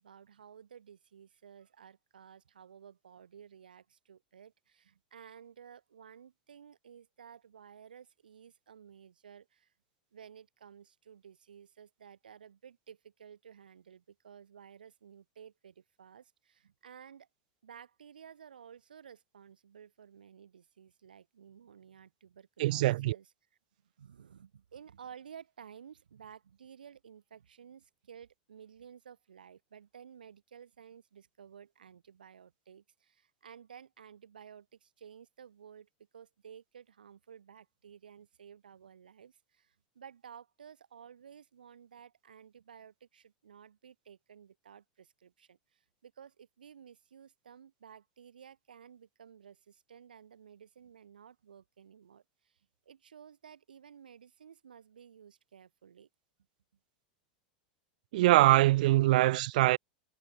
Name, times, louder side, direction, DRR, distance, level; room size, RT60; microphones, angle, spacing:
voice 1, 0.0-9.7 10.1-17.3 17.6-23.3 23.8-52.6 52.9-56.1, right 8 dB, 90° right, 2.8 m, -54 dB
voice 2, 22.6-23.2 58.1-59.8, right 17 dB, 70° right, 0.4 m, -23 dB
hypercardioid pair, 105°, 5 cm